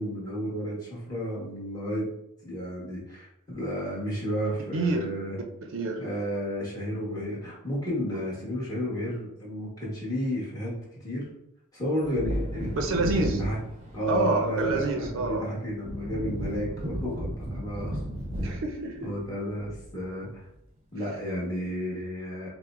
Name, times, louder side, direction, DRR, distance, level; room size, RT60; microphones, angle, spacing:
voice 1, 0.0-2.1 2.4-5.4 6.0-11.3 11.7-12.7 13.2-13.6 13.9-18.0 19.0-20.4 20.9-22.5, equal, 15° left, -7 dB, 1.1 m, -32 dB
voice 2, 4.7-5.1 5.7-6.0 12.7-13.4 14.1-15.4 18.4-19.1, right 3 dB, 60° right, 3 dB, 0.5 m, -27 dB
Wind / Thunder, 12.0-20.3 20.5-20.6, equal, 30° right, 0.7 m, -35 dB
5.7 x 2.0 x 2.5 m, 0.81 s
head